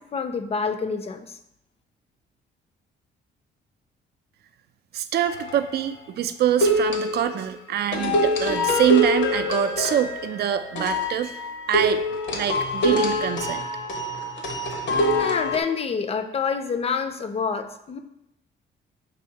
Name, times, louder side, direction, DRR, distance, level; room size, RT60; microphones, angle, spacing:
voice 1, 0.1-1.2 15.2-18.0, left 5 dB, 30° left, 8 dB, 0.4 m, -27 dB
voice 2, 4.9-11.3 11.7-12.0 12.3-13.6, right 10 dB, 55° right, 10 dB, 0.4 m, -25 dB
sound 1, 5.3-5.7 6.6-7.5 7.9-15.6, left 1 dB, 65° left, 0.7 m, -24 dB
5.3 x 3.1 x 2.8 m, 0.82 s
cardioid pair, 90°, 20 cm